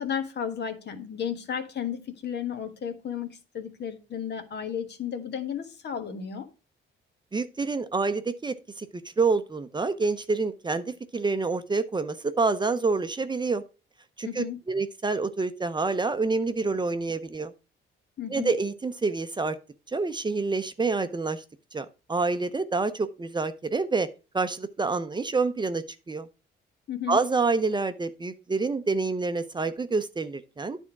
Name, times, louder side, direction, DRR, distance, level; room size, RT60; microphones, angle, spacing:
voice 1, 0.0-6.5 14.2-14.6 18.2-18.5 26.9-27.2, left 8 dB, 60° left, 1.4 m, -33 dB
voice 2, 7.3-8.9 9.2-13.6 14.2-17.5 18.3-19.6 19.9-21.4 21.7-24.1 24.3-26.3 27.1-30.8, right 4 dB, 20° right, 0.7 m, -27 dB
9.7 x 3.6 x 6.0 m
cardioid pair, 90°, 20 cm